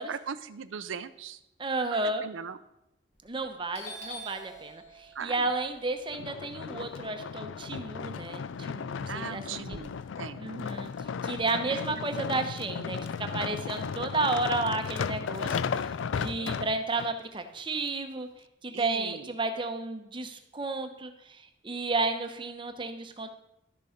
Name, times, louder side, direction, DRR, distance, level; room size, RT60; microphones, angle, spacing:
voice 1, 0.1-1.4 1.9-2.6 5.2-5.3 9.1-10.4 11.7-11.8 18.7-19.3, right 6 dB, 90° right, 11 dB, 0.5 m, -39 dB
voice 2, 1.6-2.2 3.2-9.8 10.4-10.9 11.2-18.3 18.6-23.3, right 3 dB, 25° right, 7 dB, 0.9 m, -32 dB
Doorbell, 3.2-3.4 3.7-7.9 8.2-9.8, equal, 35° left, 1.5 m, -47 dB
sound 1, 6.1-17.1 17.7-17.8, left 6 dB, 80° left, 0.4 m, -35 dB
12.0 x 6.8 x 5.1 m, 0.86 s
head